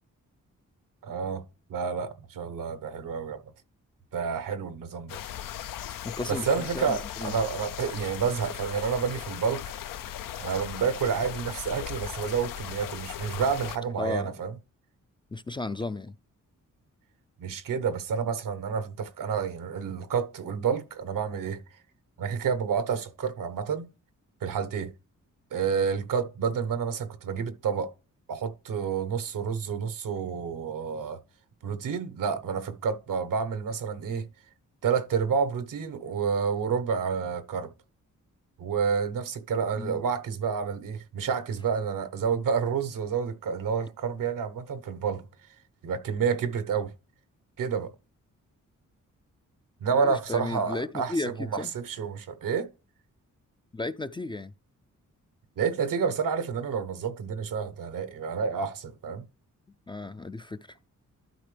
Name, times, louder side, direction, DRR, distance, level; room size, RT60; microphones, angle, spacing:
voice 1, 1.0-1.4 1.7-3.4 4.1-5.2 6.3-9.6 10.4-14.5 17.4-21.6 22.2-23.9 24.4-24.9 25.5-27.9 28.3-31.2 31.6-34.3 34.8-37.7 38.6-45.2 45.8-46.9 47.6-47.9 49.8-52.7 55.6-59.2, right 6 dB, 85° right, 1.1 m, -29 dB
sound 1, 5.1-13.8, left 11 dB, 90° left, 0.5 m, -38 dB
voice 2, 6.0-7.3 14.0-14.3 15.3-16.1 39.8-40.0 49.9-51.7 53.7-54.5 59.9-60.8, left 2 dB, 15° left, 0.3 m, -34 dB
12.0 x 4.9 x 3.3 m
wide cardioid pair, 105°, 32 cm